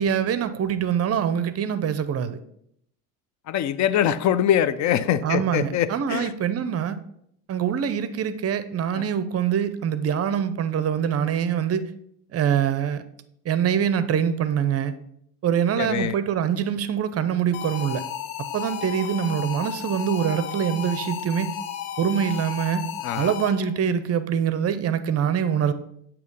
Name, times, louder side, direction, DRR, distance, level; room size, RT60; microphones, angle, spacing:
voice 1, 0.0-2.4 5.2-7.0 7.5-11.9 12.3-13.0 13.4-14.9 15.4-18.0 18.5-21.5 22.0-22.8 23.1-25.7, right 8 dB, 35° right, 13 dB, 0.6 m, -24 dB
voice 2, 3.5-6.3 8.9-9.0 15.8-16.2 23.0-23.3, left 10 dB, 45° left, 15 dB, 0.5 m, -23 dB
sound 1, 17.5-23.8, left 10 dB, 85° left, 0.6 m, -33 dB
8.2 x 2.9 x 5.3 m, 0.72 s
supercardioid pair, 85°, 41 cm